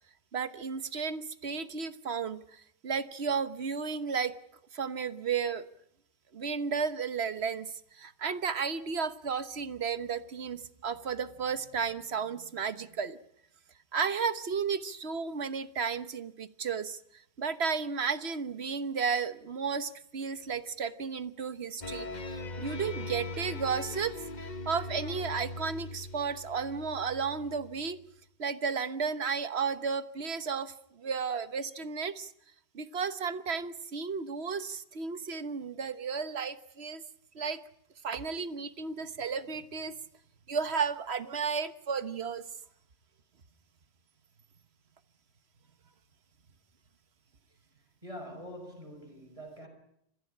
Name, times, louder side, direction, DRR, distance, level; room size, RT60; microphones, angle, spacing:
voice 1, 0.3-4.3 4.7-5.7 6.3-13.2 13.9-17.0 17.4-28.0 28.4-32.3 32.7-37.0 37.3-37.6 38.0-40.0 40.5-42.4, right 5 dB, 70° right, 12 dB, 1.4 m, -33 dB
sound 1, 21.8-28.0, left 2 dB, 45° left, 1.3 m, -40 dB
voice 2, 48.0-49.7, equal, 30° right, 4 dB, 5.7 m, -44 dB
28.0 x 15.0 x 9.9 m, 0.75 s
omnidirectional pair, 1.1 m